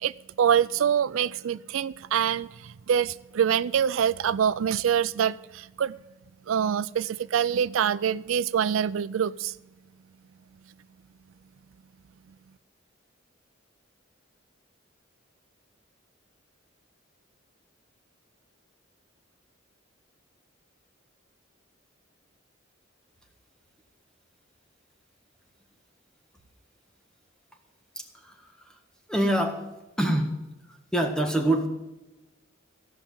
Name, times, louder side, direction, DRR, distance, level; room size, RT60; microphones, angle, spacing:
voice 1, 0.0-6.0 6.5-9.5, right 8 dB, 85° right, 17 dB, 0.4 m, -25 dB
voice 2, 27.9-28.8 29.1-30.4 30.7-31.7, right 1 dB, 5° left, 4 dB, 1.6 m, -26 dB
15.0 x 5.8 x 9.0 m, 1.0 s
head